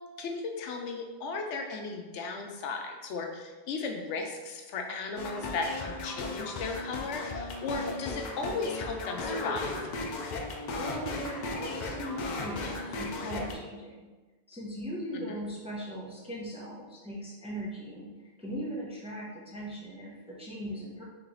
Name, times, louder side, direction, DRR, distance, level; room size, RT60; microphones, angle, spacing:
voice 1, 0.2-9.7 15.3-15.4, left 4 dB, 80° left, 3 dB, 0.9 m, -36 dB
sound 1, 5.2-13.5, left 3 dB, 60° left, 0.5 m, -36 dB
voice 2, 10.7-14.0 14.5-18.1 18.4-21.0, equal, 5° right, -5 dB, 0.6 m, -39 dB
3.5 x 3.1 x 3.8 m, 1.2 s
omnidirectional pair, 1.2 m